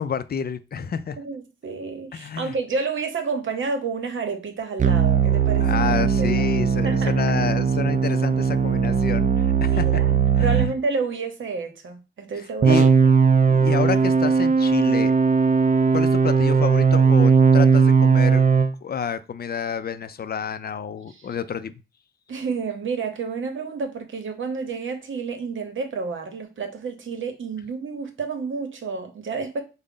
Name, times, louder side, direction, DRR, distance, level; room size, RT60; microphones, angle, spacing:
voice 1, 0.0-1.2 2.1-2.5 5.6-10.0 10.4-10.7 12.4-12.9 13.5-15.1 15.9-18.4 18.8-21.7, left 7 dB, 50° left, 13 dB, 0.4 m, -29 dB
voice 2, 1.2-5.7 6.2-6.4 6.8-7.1 9.6-12.9 21.1-21.3 22.3-29.6, right 4 dB, 80° right, 5 dB, 0.8 m, -30 dB
sound 1, 4.8-10.7 12.6-18.7, right 5 dB, 40° right, 0.4 m, -18 dB
3.8 x 2.1 x 3.6 m, 0.30 s
cardioid pair, 50°, 20 cm